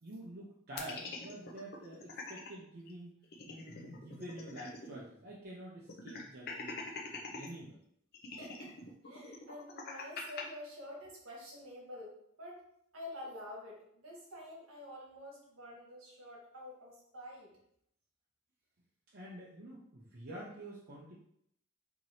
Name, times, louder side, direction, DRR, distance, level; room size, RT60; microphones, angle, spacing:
voice 1, 0.0-3.2 3.5-6.8 7.3-7.8 19.1-21.1, right 1 dB, 50° right, -5 dB, 0.6 m, -48 dB
sound 1, 0.8-2.5 2.9-3.0 3.2-5.0 5.3-5.4 5.9-7.5 8.1-10.4, left 3 dB, 45° left, 0.6 m, -44 dB
voice 2, 8.4-8.7 9.0-12.6 12.9-17.5, left 1 dB, 70° right, -2 dB, 1.3 m, -48 dB
4.5 x 2.9 x 2.7 m, 0.72 s
head